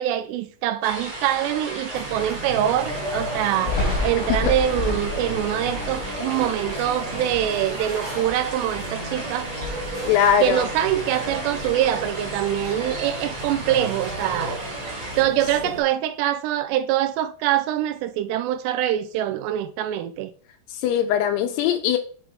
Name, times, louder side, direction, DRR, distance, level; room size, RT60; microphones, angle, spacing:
voice 1, 0.0-9.5 10.4-14.6 15.2-20.3, right 12 dB, 85° right, 2.7 m, -24 dB
sound 1, 0.8-15.2, right 2 dB, 50° right, 1.7 m, -35 dB
sound 2, 1.9-15.8, right 1 dB, 15° right, 2.2 m, -34 dB
Thunder, 3.6-9.1 9.4-10.9 11.2-12.9, left 2 dB, 15° left, 1.6 m, -31 dB
voice 2, 10.1-10.7 20.7-22.0, left 9 dB, 80° left, 2.5 m, -20 dB
6.1 x 5.9 x 3.4 m
omnidirectional pair, 4.9 m